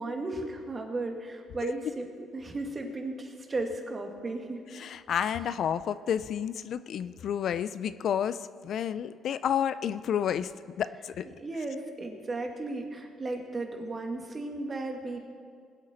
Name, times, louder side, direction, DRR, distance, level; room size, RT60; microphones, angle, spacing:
voice 1, 0.0-2.1 2.3-4.6 11.4-15.2, right 2 dB, 30° right, 3 dB, 2.1 m, -35 dB
voice 2, 4.7-10.5 10.8-11.3, left 9 dB, 60° left, 14 dB, 0.4 m, -30 dB
20.0 x 8.4 x 4.4 m, 2.1 s
supercardioid pair, 80°, 0 cm